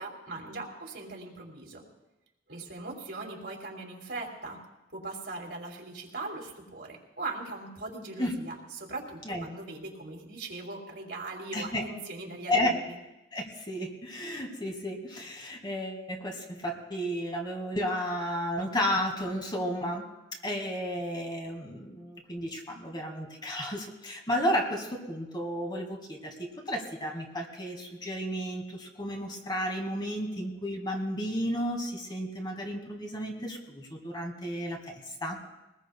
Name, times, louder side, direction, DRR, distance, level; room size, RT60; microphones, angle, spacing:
voice 1, 0.0-1.8 2.5-4.6 4.9-13.0, right 3 dB, 70° right, 0 dB, 3.0 m, -40 dB
voice 2, 11.5-11.8 12.5-12.8 13.3-20.1 20.4-35.4, equal, 25° left, 2 dB, 2.1 m, -33 dB
23.5 x 19.5 x 2.3 m, 0.98 s
head